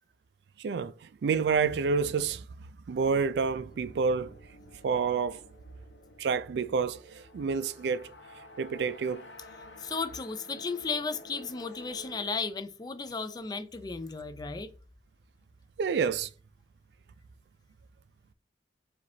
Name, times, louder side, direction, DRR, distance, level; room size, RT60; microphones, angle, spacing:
voice 1, 0.6-2.5 2.9-4.4 4.8-5.4 6.2-8.1 8.6-9.3 15.8-16.3, right 5 dB, 70° right, 0.3 m, -28 dB
sound 1, 3.7-12.3, left 2 dB, 90° left, 0.8 m, -52 dB
voice 2, 9.8-14.7, left 4 dB, 25° left, 0.4 m, -34 dB
4.9 x 3.3 x 2.7 m
head